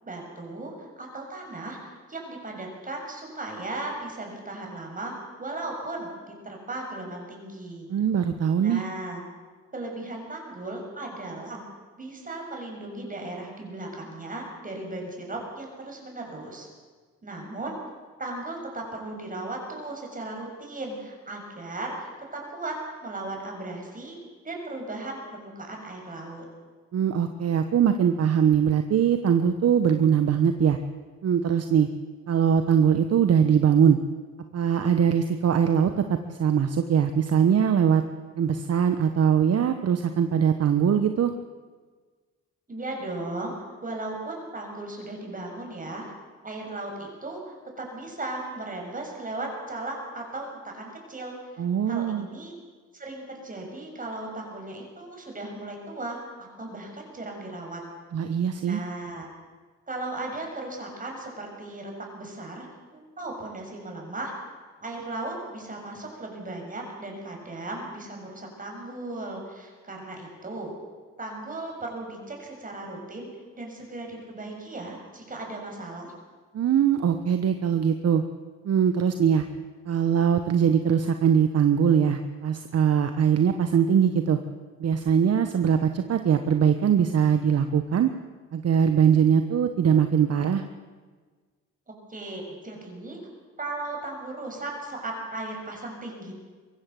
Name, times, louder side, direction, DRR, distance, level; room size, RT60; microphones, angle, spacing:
voice 1, 0.0-7.9 8.6-9.2 9.7-11.6 12.0-16.7 17.2-17.8 18.2-22.1 22.3-22.8 23.0-24.2 24.4-26.5 42.7-43.5 43.8-46.0 46.4-52.5 52.9-57.8 58.6-59.3 59.9-62.7 62.9-64.3 64.8-70.7 71.2-73.3 73.5-76.1 92.1-93.2 93.6-96.3, right 2 dB, 25° right, 1 dB, 6.9 m, -36 dB
voice 2, 7.9-8.8 26.9-30.8 31.2-31.9 32.3-34.0 34.5-38.0 38.4-41.3 51.6-52.3 58.1-58.8 76.5-78.2 78.6-79.4 79.8-84.4 84.8-88.1 88.5-90.6, right 8 dB, 55° right, 8 dB, 1.3 m, -22 dB
22.5 x 15.5 x 7.8 m, 1.5 s
cardioid pair, 90°, 30 cm